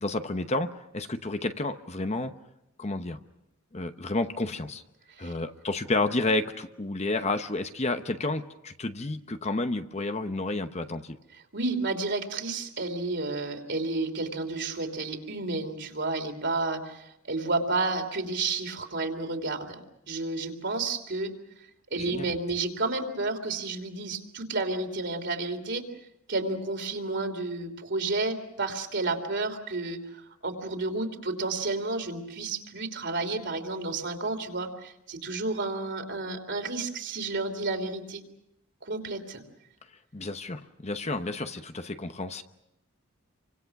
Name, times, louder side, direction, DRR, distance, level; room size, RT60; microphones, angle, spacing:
voice 1, 0.0-2.3 2.8-3.2 3.7-4.8 5.2-11.2 22.0-22.3 40.1-42.4, left 2 dB, 30° left, 8 dB, 0.9 m, -30 dB
voice 2, 11.5-19.8 20.1-21.3 21.9-25.8 26.3-38.2 38.8-39.4, right 3 dB, 55° right, 5 dB, 3.2 m, -31 dB
29.5 x 25.0 x 6.0 m, 0.85 s
head